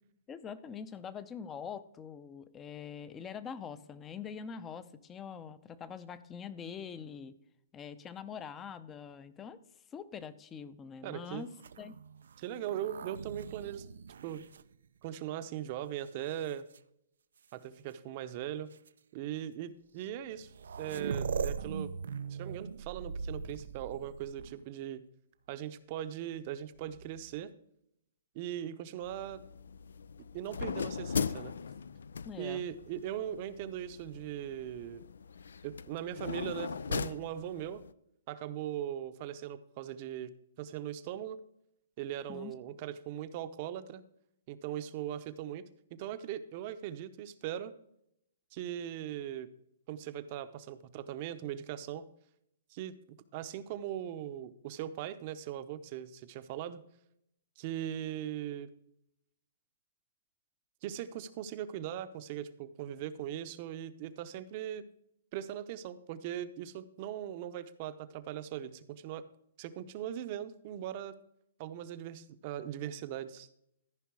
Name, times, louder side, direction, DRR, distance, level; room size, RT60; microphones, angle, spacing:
voice 1, 0.3-7.3 7.7-9.6 9.9-11.5 11.8-11.9 32.2-32.6 42.3-42.5, left 7 dB, 15° left, 15 dB, 0.6 m, -44 dB
voice 2, 11.0-11.5 12.4-13.9 14.2-14.4 15.0-16.7 17.5-18.7 19.1-20.5 20.8-21.9 22.3-25.0 25.5-27.5 28.3-29.4 30.2-31.5 32.4-35.0 35.6-37.8 38.3-40.3 40.6-41.4 42.0-44.0 44.5-45.6 45.9-47.8 48.5-49.5 49.9-52.1 52.7-53.0 53.3-56.8 57.6-58.7 60.8-64.9 65.3-69.2 69.6-71.1 71.6-73.5, right 11 dB, 40° right, 12 dB, 0.7 m, -39 dB
sound 1, 11.5-15.4 16.1-16.8 17.9-18.0 18.7-18.9 20.0-20.1 20.3-24.8 26.7-27.4, right 6 dB, 80° right, 0.5 m, -41 dB
sound 2, 29.0-37.9, left 6 dB, 85° left, 0.4 m, -39 dB
14.0 x 5.3 x 4.7 m, 0.76 s
hypercardioid pair, 150°, 0 cm